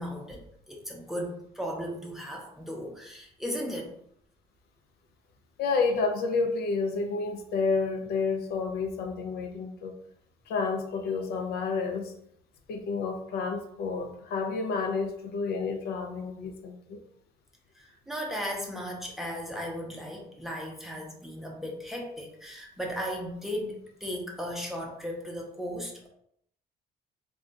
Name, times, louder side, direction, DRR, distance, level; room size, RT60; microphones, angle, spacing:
voice 1, 0.0-3.9 17.7-26.1, equal, ahead, -2 dB, 0.7 m, -36 dB
voice 2, 5.6-9.9 10.5-12.1 12.7-17.0, left 4 dB, 70° left, 4 dB, 0.5 m, -30 dB
2.3 x 2.2 x 3.9 m, 0.73 s
cardioid pair, 110°, 17 cm